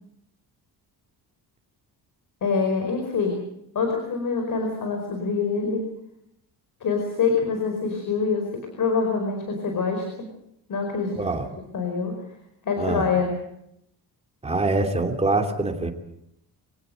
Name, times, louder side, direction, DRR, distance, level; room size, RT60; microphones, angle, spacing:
voice 1, 2.4-3.4 3.7-5.9 6.8-10.3 10.7-11.2 11.7-12.2 12.6-13.3, left 5 dB, 50° left, 3 dB, 4.9 m, -25 dB
voice 2, 11.2-11.5 12.8-13.1 14.4-15.9, right 2 dB, 15° right, 4 dB, 2.8 m, -24 dB
24.5 x 17.5 x 7.9 m, 0.78 s
cardioid pair, 135°, 40 cm